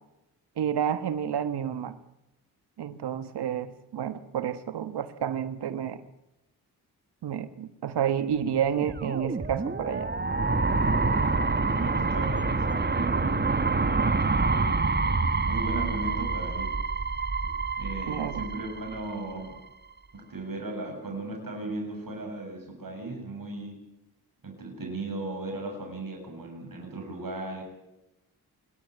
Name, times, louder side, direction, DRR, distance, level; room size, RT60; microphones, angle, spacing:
voice 1, 0.6-2.0 2.8-6.0 7.2-10.1 18.1-18.4, right 9 dB, 75° right, 12 dB, 1.4 m, -30 dB
sound 1, 8.6-19.6, right 3 dB, 25° right, 1.5 m, -27 dB
voice 2, 11.7-14.8 15.4-16.8 17.8-19.6 20.1-23.8 24.4-27.6, right 2 dB, 55° right, 3 dB, 6.9 m, -36 dB
27.0 x 12.0 x 9.3 m, 0.92 s
cardioid pair, 55°, 40 cm